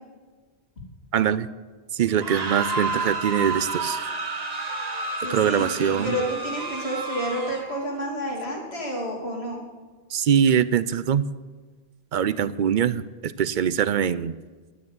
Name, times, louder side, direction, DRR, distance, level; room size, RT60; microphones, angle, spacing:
voice 1, 1.1-1.5 1.9-4.0 5.3-6.2 10.1-11.3 12.1-14.4, right 8 dB, 60° right, 16 dB, 0.6 m, -23 dB
sound 1, 2.1-7.8, right 3 dB, 40° right, 1.1 m, -30 dB
voice 2, 5.2-9.6, equal, 85° left, -2 dB, 3.2 m, -30 dB
11.0 x 9.3 x 8.0 m, 1.4 s
omnidirectional pair, 1.0 m